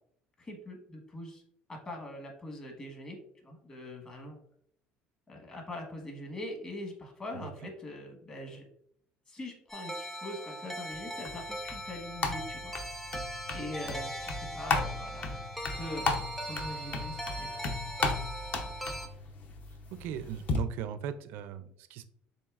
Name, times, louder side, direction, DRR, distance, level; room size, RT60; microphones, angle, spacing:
voice 1, 0.4-1.4 1.7-3.2 3.4-4.4 5.3-8.7 9.3-13.0 13.5-15.4 15.7-17.6, left 1 dB, 25° left, 1 dB, 1.2 m, -42 dB
voice 2, 7.3-7.7 19.9-22.1, right 9 dB, 70° right, 12 dB, 0.4 m, -38 dB
sound 1, 9.7-19.1, right 1 dB, 5° left, 0.4 m, -40 dB
sound 2, 10.9-20.6, left 3 dB, 45° left, 0.7 m, -36 dB
7.1 x 2.7 x 2.4 m, 0.67 s
cardioid pair, 130°, 4 cm